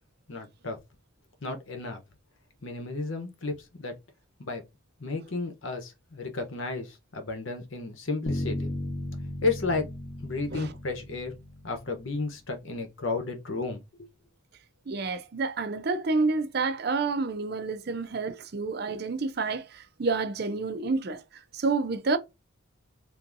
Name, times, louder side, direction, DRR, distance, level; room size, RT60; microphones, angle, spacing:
voice 1, 0.3-0.8 1.4-2.0 2.6-3.9 4.4-4.6 5.0-8.8 9.4-9.9 10.2-11.3 11.6-14.1, left 3 dB, 70° left, 0.9 m, -33 dB
Bass guitar, 8.3-12.3, left 1 dB, 40° left, 0.9 m, -36 dB
voice 2, 14.9-22.2, right 3 dB, 50° right, 0.5 m, -29 dB
3.5 x 2.6 x 2.5 m
head